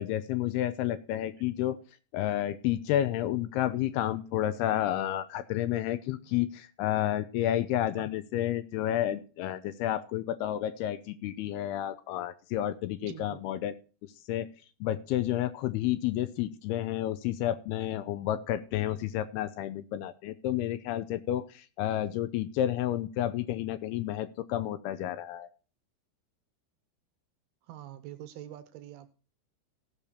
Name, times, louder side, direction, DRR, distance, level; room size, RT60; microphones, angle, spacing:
voice 1, 0.0-1.8 2.1-13.7 14.3-14.5 14.8-25.5, left 12 dB, 80° left, 13 dB, 2.5 m, -30 dB
voice 2, 13.0-13.4 27.7-29.1, right 12 dB, 75° right, 10 dB, 2.6 m, -45 dB
16.5 x 6.7 x 4.3 m, 0.36 s
omnidirectional pair, 5.0 m